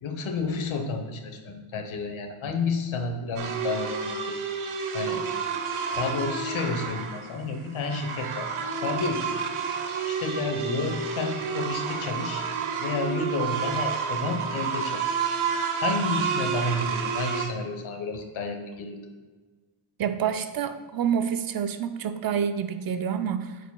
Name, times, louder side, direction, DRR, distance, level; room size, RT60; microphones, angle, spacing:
voice 1, 0.0-4.3 4.9-5.2 5.9-8.5 8.7-9.4 10.1-12.5 12.8-15.2 15.8-19.0, left 3 dB, 75° left, 5 dB, 1.0 m, -30 dB
sound 1, 3.4-17.5, right 6 dB, 80° right, 0.9 m, -30 dB
voice 2, 20.0-23.6, right 8 dB, 50° right, 9 dB, 0.5 m, -28 dB
9.1 x 5.0 x 2.2 m, 1.3 s
cardioid pair, 95°, 49 cm